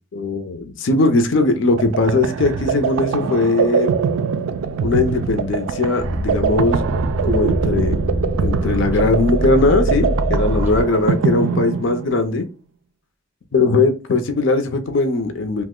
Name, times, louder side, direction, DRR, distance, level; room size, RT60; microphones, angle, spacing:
voice 1, 0.1-3.9 4.8-6.8 7.2-7.9 8.4-12.5 13.5-15.6, left 3 dB, 65° left, 7 dB, 0.5 m, -19 dB
sound 1, 1.5-12.3, right 6 dB, 90° right, 0.3 m, -23 dB
sound 2, 6.0-11.3, equal, 10° right, 0.6 m, -23 dB
2.9 x 2.0 x 3.6 m, 0.31 s
head